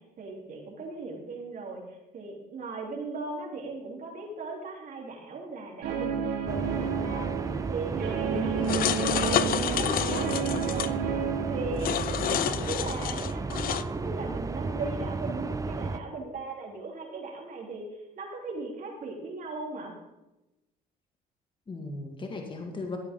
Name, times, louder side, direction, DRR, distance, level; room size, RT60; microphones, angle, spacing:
voice 1, 0.0-7.3 7.7-11.2 11.5-12.0 12.3-19.9, right 3 dB, 55° right, -1 dB, 3.4 m, -38 dB
Guitar, 5.8-12.4, right 7 dB, 80° right, 1.9 m, -31 dB
sound 1, 6.5-16.0, right 3 dB, 20° right, 0.6 m, -34 dB
voice 2, 8.3-8.9 21.7-23.0, left 3 dB, 30° left, 3 dB, 1.9 m, -36 dB
sound 2, 8.7-10.9 11.8-13.8, left 11 dB, 60° left, 0.6 m, -29 dB
14.5 x 9.8 x 3.7 m, 0.97 s
cardioid pair, 90°, 17 cm